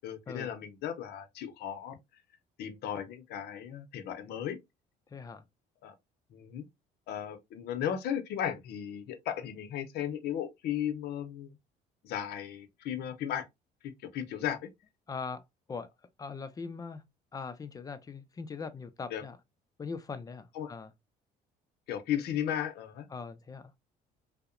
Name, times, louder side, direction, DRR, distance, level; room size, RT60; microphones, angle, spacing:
voice 1, 0.0-2.0 2.6-4.6 5.8-5.9 6.3-6.7 7.1-11.6 12.0-13.4 13.8-14.6 19.1-19.2 20.5-20.7 21.9-23.1, left 9 dB, 70° left, 0.6 m, -35 dB
voice 2, 5.1-5.4 15.1-15.4 15.7-15.9 16.2-17.0 17.3-19.4 19.8-20.9 23.1-23.7, left 5 dB, 20° left, 0.3 m, -41 dB
2.7 x 2.0 x 2.4 m
cardioid pair, 110°, 17 cm